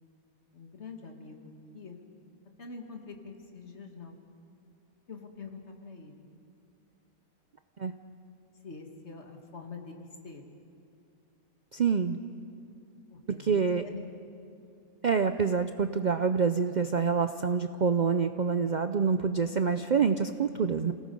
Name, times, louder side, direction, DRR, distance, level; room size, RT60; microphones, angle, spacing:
voice 1, 0.5-2.0 2.6-4.2 5.1-6.2 8.6-10.6 13.1-14.0, left 4 dB, 50° left, 3 dB, 2.1 m, -45 dB
voice 2, 11.7-12.2 13.4-13.8 15.0-20.9, right 6 dB, 90° right, 9 dB, 0.4 m, -26 dB
29.0 x 18.0 x 5.3 m, 2.7 s
omnidirectional pair, 1.5 m